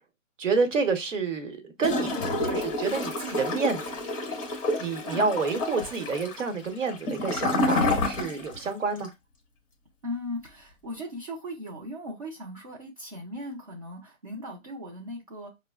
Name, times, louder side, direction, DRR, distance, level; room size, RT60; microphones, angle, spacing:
voice 1, 0.4-2.1 2.4-4.0 4.8-9.1, right 4 dB, 70° right, 1.0 m, -28 dB
Gurgling / Toilet flush, 1.8-8.7 9.0-9.1, left 2 dB, 25° left, 0.7 m, -29 dB
voice 2, 10.0-15.5, left 1 dB, 30° right, 0.5 m, -38 dB
4.8 x 2.0 x 2.3 m
hypercardioid pair, 150°, 40 cm